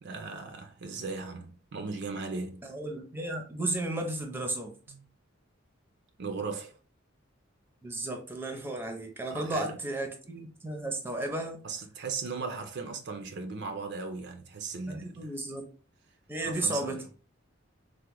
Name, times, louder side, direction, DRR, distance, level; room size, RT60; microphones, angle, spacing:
voice 1, 0.0-2.6 4.9-5.0 6.2-6.7 9.3-9.8 11.6-15.3 16.4-17.1, right 4 dB, 60° right, 0.4 m, -37 dB
voice 2, 2.6-4.8 7.8-11.6 14.9-15.7 16.3-17.0, right 2 dB, 10° right, 0.5 m, -34 dB
3.4 x 2.1 x 3.0 m
head